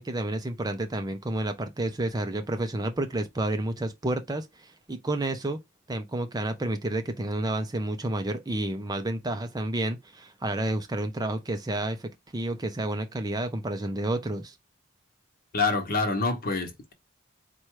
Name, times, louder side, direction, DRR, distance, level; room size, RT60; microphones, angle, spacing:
voice 1, 0.0-5.6 5.9-14.6, right 1 dB, 20° right, 0.5 m, -30 dB
voice 2, 15.5-16.9, left 3 dB, 45° left, 1.1 m, -26 dB
4.4 x 2.2 x 4.7 m
head